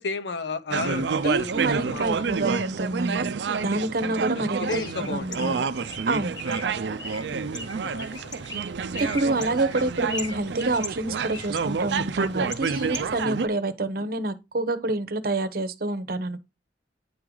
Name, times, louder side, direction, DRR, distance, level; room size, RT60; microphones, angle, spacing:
voice 1, 0.0-2.1 4.3-5.6 6.8-7.0 7.3-8.4, left 4 dB, 85° left, 0.7 m, -34 dB
sound 1, 0.7-13.5, right 5 dB, 80° right, 0.5 m, -29 dB
voice 2, 1.2-3.3 3.6-4.8 5.1-5.6 6.1-6.4 9.0-16.4, right 2 dB, 55° right, 0.9 m, -27 dB
Bird, 4.7-13.4, left 1 dB, 25° left, 1.4 m, -40 dB
sound 2, 5.8-13.2, left 1 dB, 40° left, 1.4 m, -49 dB
9.5 x 4.7 x 3.8 m
head